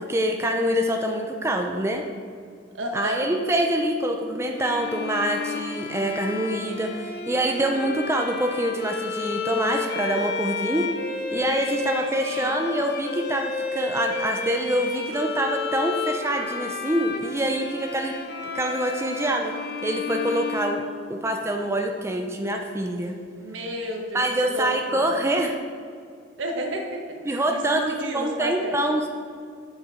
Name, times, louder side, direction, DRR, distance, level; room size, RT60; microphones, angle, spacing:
voice 1, 0.0-2.0 2.9-10.9 11.3-18.1 18.5-19.5 19.8-20.8 21.1-23.2 24.1-25.6 27.3-27.9 28.1-29.1, right 1 dB, 15° right, 3 dB, 0.5 m, -25 dB
voice 2, 2.7-3.3 12.2-12.6 23.4-25.0 26.4-28.8, right 1 dB, 80° right, 2 dB, 1.3 m, -32 dB
Bowed string instrument, 4.5-21.5, left 5 dB, 55° left, 0.8 m, -32 dB
7.5 x 6.5 x 5.0 m, 2.2 s
head